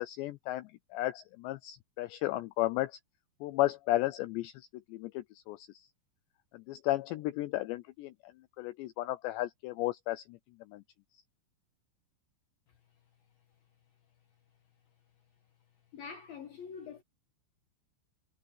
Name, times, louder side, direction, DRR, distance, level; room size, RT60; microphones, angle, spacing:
voice 1, 0.0-2.9 3.4-5.9 6.5-8.3 8.6-10.4 10.7-10.8, left 16 dB, 80° left, 2.6 m, -34 dB
voice 2, 15.9-17.0, left 6 dB, 60° left, 2.9 m, -44 dB
omnidirectional pair, 5.6 m